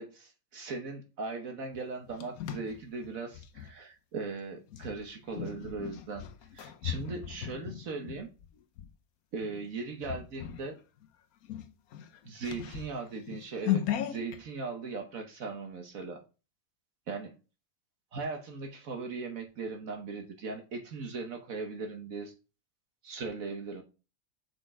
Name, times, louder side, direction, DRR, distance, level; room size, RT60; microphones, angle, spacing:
voice 1, 0.0-6.2 6.5-8.3 9.3-10.8 12.2-16.2 17.1-17.3 18.1-22.3 23.0-23.8, right 4 dB, 70° right, 4 dB, 1.5 m, -39 dB
sound 1, 1.7-3.7 4.7-8.9 9.4-9.7 10.0-10.7 11.0-11.1 11.4-14.4, left 11 dB, 80° left, 1.2 m, -37 dB
6.3 x 5.2 x 4.7 m, 0.32 s
omnidirectional pair, 1.5 m